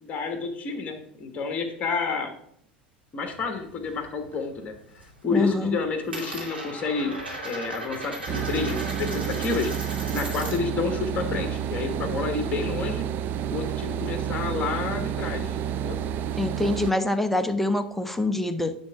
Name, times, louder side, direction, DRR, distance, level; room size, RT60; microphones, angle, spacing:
voice 1, 0.0-2.3 3.1-4.7 5.2-7.1 7.4-13.0 13.5-16.0, left 4 dB, 30° left, 1.4 m, -30 dB
Coin (dropping), 3.3-4.4 4.7-5.2 5.5-10.8 11.1-12.8, right 1 dB, 85° right, 2.5 m, -38 dB
voice 2, 5.3-5.8 16.4-18.8, left 2 dB, 5° left, 0.8 m, -25 dB
sound 1, 8.3-16.9, right 9 dB, 35° right, 0.4 m, -30 dB
9.6 x 3.7 x 5.8 m
figure-of-eight pair, 80°, 5 cm